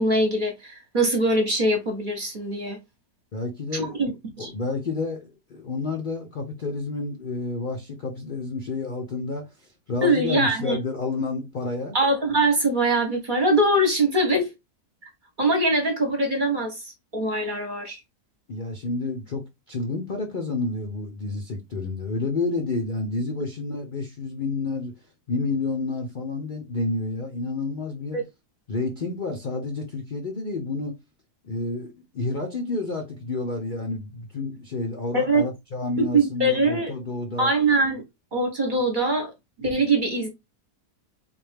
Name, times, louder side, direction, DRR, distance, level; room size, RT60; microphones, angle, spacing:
voice 1, 0.0-2.8 3.7-4.1 4.4-4.5 10.0-10.8 11.9-14.5 15.4-18.0 28.1-28.2 35.1-35.5 36.0-36.9 37.4-38.0 38.3-39.3 39.6-40.3, right 1 dB, 40° right, 0.8 m, -22 dB
voice 2, 3.3-4.0 4.4-12.0 18.5-24.9 25.3-28.2 28.7-31.0 31.4-37.5, left 3 dB, 70° left, 0.4 m, -30 dB
3.7 x 2.5 x 3.3 m
omnidirectional pair, 1.7 m